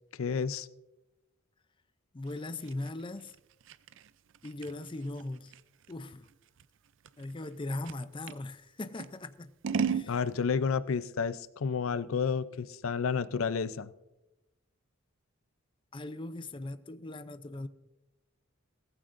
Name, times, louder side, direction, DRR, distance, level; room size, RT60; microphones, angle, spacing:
voice 1, 0.2-0.7 10.0-13.9, left 5 dB, 90° left, 0.5 m, -31 dB
voice 2, 2.1-3.3 4.4-5.5 5.9-6.3 7.2-9.5 9.8-10.2 15.9-17.7, left 2 dB, 25° left, 0.5 m, -39 dB
Scissors, 2.3-8.4 9.0-10.1, right 6 dB, 65° right, 0.5 m, -37 dB
17.5 x 15.0 x 2.6 m
head